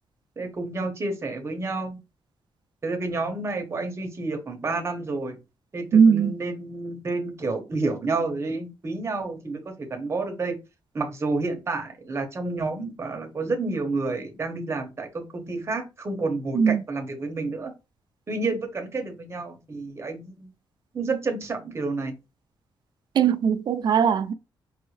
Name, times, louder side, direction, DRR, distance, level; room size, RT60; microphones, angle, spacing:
voice 1, 0.4-2.0 2.8-5.4 5.7-10.6 10.9-17.7 18.3-20.5 20.9-22.1, right 3 dB, 30° right, 1.1 m, -30 dB
voice 2, 5.9-6.3 16.5-16.8 23.2-24.3, right 6 dB, 55° right, 0.4 m, -19 dB
5.5 x 2.6 x 3.2 m
wide cardioid pair, 150°, 9 cm